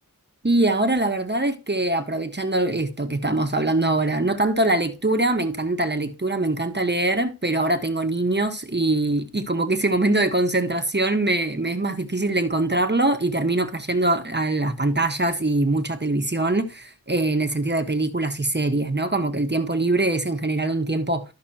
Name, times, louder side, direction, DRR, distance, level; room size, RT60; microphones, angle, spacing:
voice 1, 0.4-21.2, right 2 dB, 30° right, 1.3 m, -23 dB
13.0 x 5.9 x 2.9 m
wide cardioid pair, 55°, 36 cm